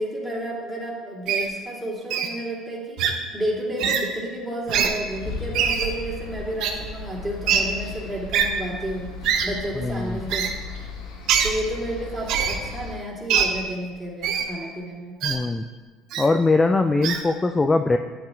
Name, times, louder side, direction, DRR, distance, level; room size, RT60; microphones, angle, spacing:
voice 1, 0.0-3.0 3.3-9.1 9.4-10.5 10.8-10.9 11.4-15.1, equal, 10° right, -5 dB, 2.7 m, -31 dB
Wild animals, 1.3-1.5 2.1-2.3 3.0-3.1 3.8-4.0 4.7-4.9 5.5-5.9 6.6-6.7 7.5-7.6 8.3-8.5 9.2-9.5 10.3-10.5 11.3-11.5 12.3-12.6 13.3-13.5 14.2-14.5 15.2-15.3 16.1-16.3 17.0-17.2, right 8 dB, 65° right, 0.8 m, -22 dB
sound 1, 5.1-13.0, left 3 dB, 80° left, 1.4 m, -37 dB
voice 2, 9.7-10.2 15.2-15.7 16.2-18.0, left 3 dB, 20° left, 7 dB, 0.4 m, -21 dB
10.5 x 8.6 x 2.5 m, 1.4 s
supercardioid pair, 75°, 0 cm